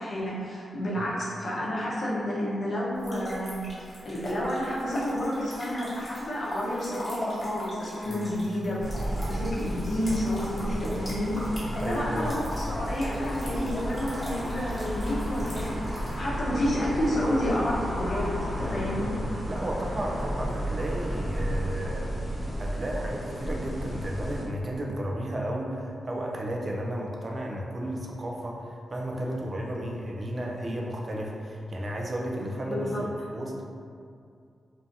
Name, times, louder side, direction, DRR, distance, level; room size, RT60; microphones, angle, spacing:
voice 1, 0.0-3.6 4.0-18.3 18.6-19.1 32.4-33.1, equal, 60° left, -6 dB, 0.7 m, -30 dB
sound 1, 2.9-16.1, equal, 30° left, 1.1 m, -41 dB
sound 2, 8.8-24.4, equal, 25° right, 1.0 m, -32 dB
voice 2, 11.8-12.3 18.6-18.9 19.5-22.1 22.6-33.6, right 1 dB, 45° right, -1 dB, 0.4 m, -33 dB
2.7 x 2.2 x 2.6 m, 2.3 s
cardioid pair, 60°, 0 cm